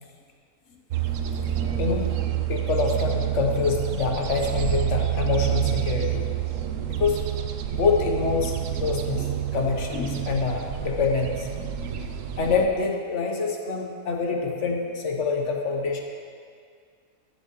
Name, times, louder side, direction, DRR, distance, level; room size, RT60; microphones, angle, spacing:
sound 1, 0.9-12.7, right 11 dB, 70° right, 0.9 m, -28 dB
voice 1, 1.8-2.1 2.5-6.3 6.9-7.2 7.7-9.3 9.5-16.0, left 4 dB, 55° left, 1 dB, 1.2 m, -26 dB
15.0 x 7.3 x 3.0 m, 2.1 s
omnidirectional pair, 1.6 m